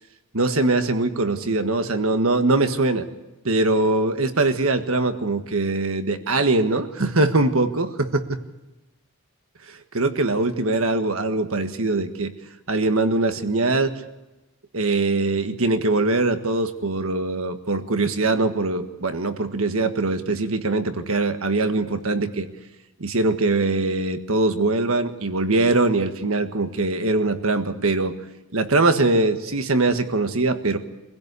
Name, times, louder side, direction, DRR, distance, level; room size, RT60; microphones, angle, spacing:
voice 1, 0.3-3.1 3.4-8.4 9.7-12.3 12.7-13.9 14.7-22.5 23.0-28.1 28.5-30.8, right 2 dB, 70° right, 8 dB, 1.6 m, -22 dB
25.5 x 16.0 x 8.2 m, 1.0 s
head